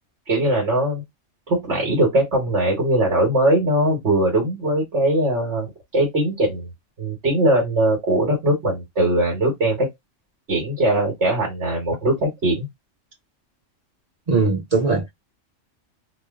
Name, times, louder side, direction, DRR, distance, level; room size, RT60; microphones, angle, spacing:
voice 1, 0.3-1.0 1.5-5.7 5.9-6.7 7.0-9.9 10.5-12.7, right 1 dB, 60° right, 1.5 m, -20 dB
voice 2, 14.3-15.1, right 4 dB, 35° right, 1.2 m, -20 dB
2.9 x 2.2 x 3.5 m
omnidirectional pair, 1.3 m